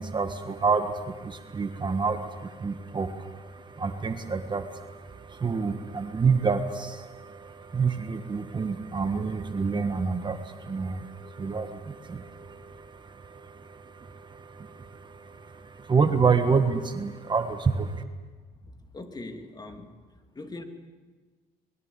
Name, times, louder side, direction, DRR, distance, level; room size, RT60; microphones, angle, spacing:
voice 1, 0.0-18.0, right 5 dB, 25° right, 7 dB, 1.6 m, -28 dB
voice 2, 18.6-19.9 20.3-20.6, left 2 dB, 25° left, 6 dB, 2.8 m, -41 dB
25.0 x 21.0 x 8.4 m, 1.4 s
cardioid pair, 110°, 17 cm